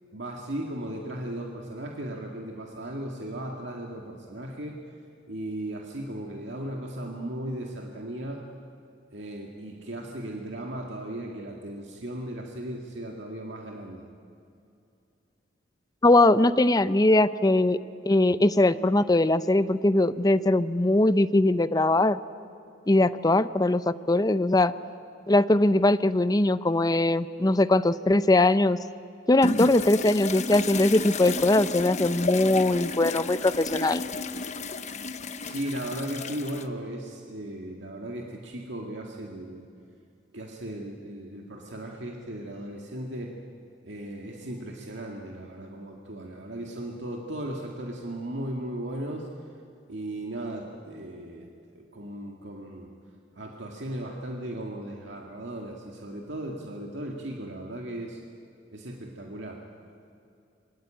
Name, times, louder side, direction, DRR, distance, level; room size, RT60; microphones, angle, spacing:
voice 1, 0.1-4.8 5.3-8.4 9.1-14.0 35.4-39.7 40.3-43.3 43.8-49.3 49.9-52.9 53.3-58.2 58.7-59.6, right 1 dB, 70° right, 0 dB, 2.1 m, -36 dB
voice 2, 16.0-17.8 18.0-22.2 22.9-24.7 25.3-28.8 29.3-34.0, left 2 dB, 20° left, 13 dB, 0.6 m, -21 dB
sound 1, 29.4-36.7, left 3 dB, 40° left, 1.0 m, -32 dB
27.0 x 22.5 x 9.1 m, 2.6 s
head